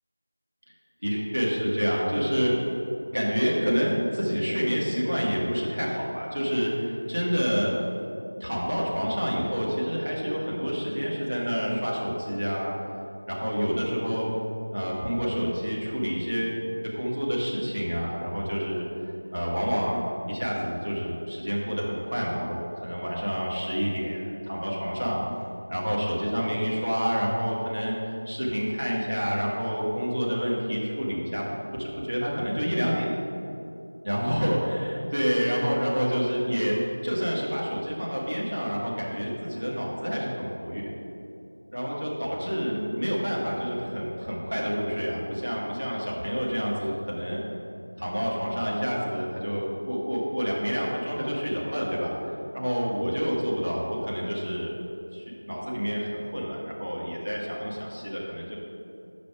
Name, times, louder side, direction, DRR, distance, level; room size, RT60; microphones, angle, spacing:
voice 1, 1.0-2.5 3.1-7.7 8.4-12.7 13.3-14.3 14.7-18.9 19.3-20.0 20.3-25.2 25.7-33.1 34.0-36.8 37.0-40.9 41.7-47.4 48.0-54.7 55.1-58.6, equal, 60° right, -5 dB, 1.7 m, -28 dB
7.3 x 5.1 x 4.7 m, 2.8 s
figure-of-eight pair, 180°, 0 cm